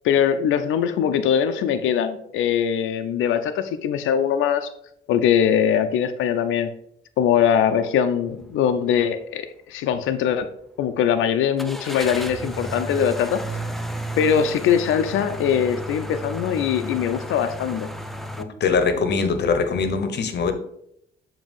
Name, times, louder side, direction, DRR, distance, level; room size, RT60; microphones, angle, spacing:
voice 1, 0.0-4.7 5.1-6.7 7.2-10.5 10.8-13.4 14.2-17.9, left 8 dB, 85° left, 9 dB, 0.6 m, -21 dB
sound 1, 8.3-8.5 9.0-9.1 11.6-18.4, right 1 dB, ahead, 0.6 m, -33 dB
voice 2, 18.6-20.5, left 5 dB, 60° left, 9 dB, 1.0 m, -22 dB
7.1 x 2.9 x 5.3 m, 0.72 s
cardioid pair, 90°, 20 cm